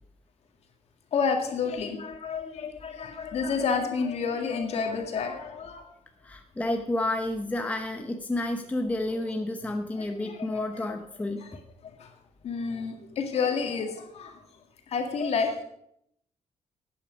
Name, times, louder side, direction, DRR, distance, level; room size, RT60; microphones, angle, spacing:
voice 1, 1.1-5.9 9.1-9.2 10.0-10.8 11.4-11.5 11.8-12.1 12.4-14.4 14.9-15.6, left 5 dB, 55° left, 4 dB, 2.1 m, -30 dB
voice 2, 6.2-11.5, left 1 dB, 10° left, 4 dB, 0.8 m, -30 dB
12.5 x 8.7 x 5.2 m, 0.71 s
cardioid pair, 155°, 13 cm